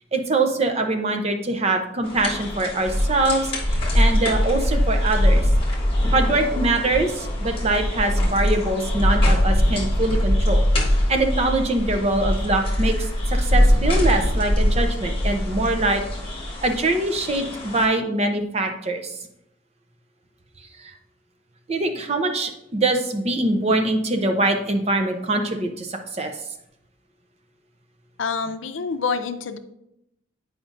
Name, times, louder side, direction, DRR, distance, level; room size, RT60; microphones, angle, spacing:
voice 1, 0.1-5.4 6.1-10.6 11.1-16.0 16.6-19.1 20.8-20.9 21.7-26.3, right 2 dB, 35° right, 5 dB, 0.6 m, -23 dB
sound 1, 2.0-17.8, left 1 dB, 30° left, 1.3 m, -22 dB
voice 2, 28.2-29.6, left 5 dB, 80° left, 9 dB, 0.5 m, -27 dB
8.8 x 5.0 x 2.5 m, 0.82 s
head